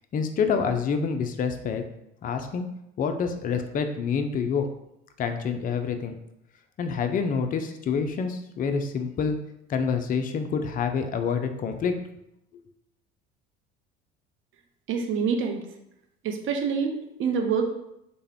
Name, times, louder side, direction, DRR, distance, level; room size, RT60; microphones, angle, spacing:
voice 1, 0.1-1.8 2.2-2.7 3.0-4.7 5.2-6.2 6.8-9.4 9.7-11.9, left 6 dB, 30° left, 7 dB, 0.4 m, -27 dB
voice 2, 14.9-15.6 16.2-17.7, right 6 dB, 45° right, 5 dB, 0.6 m, -26 dB
3.3 x 2.2 x 3.5 m, 0.83 s
hypercardioid pair, 65°, 30 cm